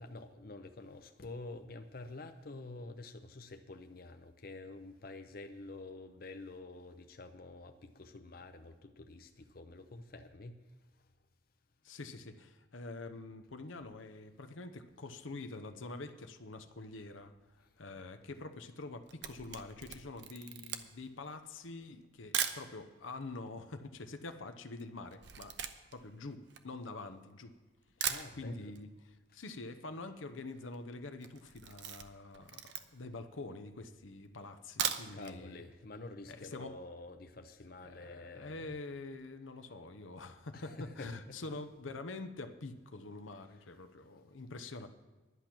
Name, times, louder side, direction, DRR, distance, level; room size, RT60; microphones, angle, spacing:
voice 1, 0.0-10.7 17.9-18.0 28.0-28.7 35.1-38.7 40.5-41.4, left 2 dB, 50° left, 7 dB, 0.7 m, -48 dB
voice 2, 11.8-25.6 25.9-27.5 28.0-35.6 36.3-36.7 37.8-44.9, left 3 dB, 85° left, 8 dB, 0.9 m, -46 dB
Camera, 19.0-22.7 23.4-23.5 23.6-27.3 27.7-27.8 28.0-28.9 29.1-29.2 29.5-29.6 29.8-30.2 30.6-30.8 31.2-33.2 33.7-33.8 34.6-35.4 35.7-35.8 36.2-36.3, right 9 dB, 60° right, 0.8 m, -39 dB
11.0 x 10.0 x 6.0 m, 1.3 s
head